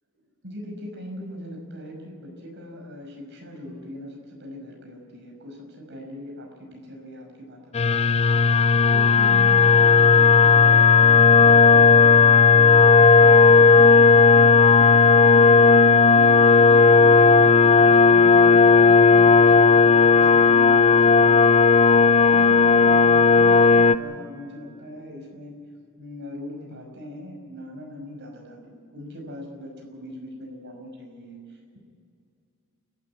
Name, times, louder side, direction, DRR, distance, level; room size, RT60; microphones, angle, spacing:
voice 1, 0.4-21.7 22.3-25.5 26.0-31.8, equal, 55° right, 1 dB, 5.8 m, -40 dB
sound 1, 7.7-23.9, left 5 dB, 30° left, 0.5 m, -14 dB
28.5 x 12.5 x 8.7 m, 2.2 s
head